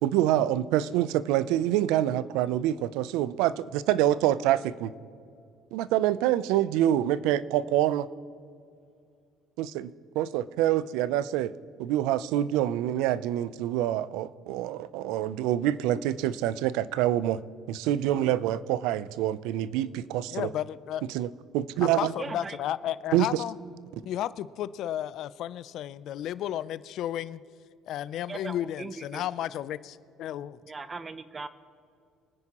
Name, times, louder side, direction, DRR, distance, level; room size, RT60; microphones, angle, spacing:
voice 1, 0.0-4.9 5.7-8.1 9.6-11.5 11.8-17.4 17.7-20.5 21.1-22.1 23.1-23.4, right 12 dB, 80° right, 17 dB, 0.4 m, -26 dB
voice 2, 20.3-21.0 21.8-23.5 24.1-27.4 27.9-30.6, left 12 dB, 60° left, 17 dB, 0.4 m, -33 dB
voice 3, 22.2-22.6 28.3-29.2 30.7-31.5, right 3 dB, 20° right, 13 dB, 0.6 m, -39 dB
25.5 x 9.8 x 3.0 m, 2.4 s
cardioid pair, 125°, 0 cm